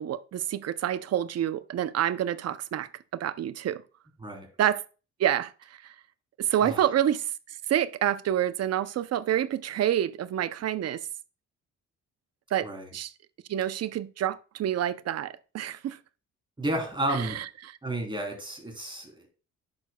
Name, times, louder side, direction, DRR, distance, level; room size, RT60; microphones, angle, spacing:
voice 1, 0.0-3.8 4.6-4.8 5.2-5.5 5.8-5.9 6.4-7.3 7.7-11.0 12.5-13.1 13.5-16.0 17.2-17.4, right 11 dB, 55° right, 0.6 m, -28 dB
voice 2, 16.6-17.5 17.8-19.3, right 1 dB, 15° right, 3.3 m, -32 dB
10.5 x 6.6 x 2.3 m
cardioid pair, 90°, 30 cm